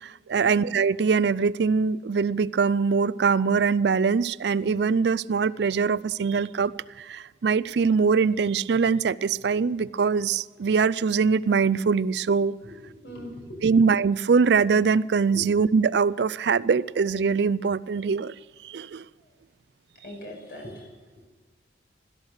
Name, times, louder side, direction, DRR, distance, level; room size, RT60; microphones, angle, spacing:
voice 1, 0.0-12.5 13.6-18.3 18.6-19.0, right 5 dB, 65° right, 18 dB, 0.4 m, -23 dB
voice 2, 12.6-13.8 15.3-15.4 19.2-19.3 20.0-21.3, equal, 60° left, 1 dB, 5.6 m, -41 dB
17.0 x 13.0 x 6.4 m, 1.4 s
head